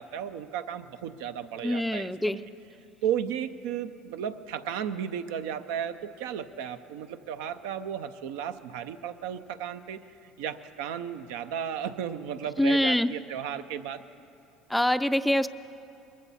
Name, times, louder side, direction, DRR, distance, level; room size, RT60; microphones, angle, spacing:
voice 1, 0.0-2.4 3.0-10.0 10.4-14.0, right 9 dB, 90° right, 10 dB, 0.6 m, -34 dB
voice 2, 1.6-2.4 12.6-13.1 14.7-15.5, left 1 dB, 5° left, 11 dB, 0.4 m, -24 dB
21.0 x 15.0 x 4.2 m, 2.7 s
supercardioid pair, 105°, 0 cm